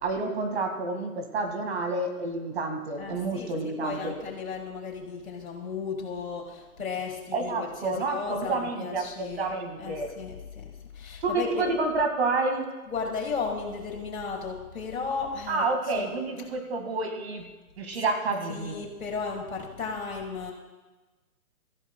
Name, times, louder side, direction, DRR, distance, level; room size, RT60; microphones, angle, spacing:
voice 1, 0.0-4.1 7.3-10.1 11.2-12.7 15.5-17.4 17.8-18.8, right 3 dB, 45° right, 4 dB, 2.0 m, -29 dB
voice 2, 3.0-11.7 12.9-16.1 18.5-20.5, left 5 dB, 60° left, -1 dB, 4.4 m, -35 dB
26.5 x 15.0 x 2.3 m, 1.2 s
hypercardioid pair, 155°, 46 cm